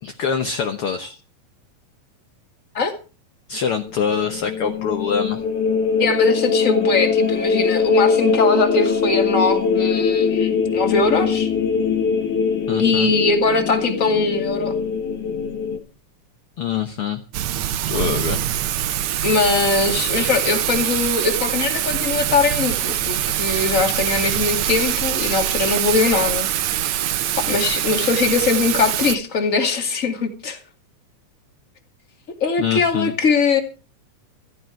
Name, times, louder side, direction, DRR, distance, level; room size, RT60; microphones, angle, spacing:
voice 1, 0.0-1.2 3.5-5.4 12.7-13.1 16.6-17.2 17.9-18.4 32.6-33.1, left 7 dB, 60° left, 6 dB, 1.8 m, -24 dB
sound 1, 3.8-15.8, left 5 dB, 80° left, 3.5 m, -21 dB
voice 2, 6.0-11.5 12.8-14.8 19.2-26.5 26.8-26.9 27.4-30.6 32.4-33.6, left 4 dB, 30° left, 5 dB, 2.4 m, -21 dB
Thunder / Rain, 17.3-29.2, right 12 dB, 70° right, 2.1 m, -23 dB
15.0 x 14.0 x 4.6 m, 0.35 s
omnidirectional pair, 3.4 m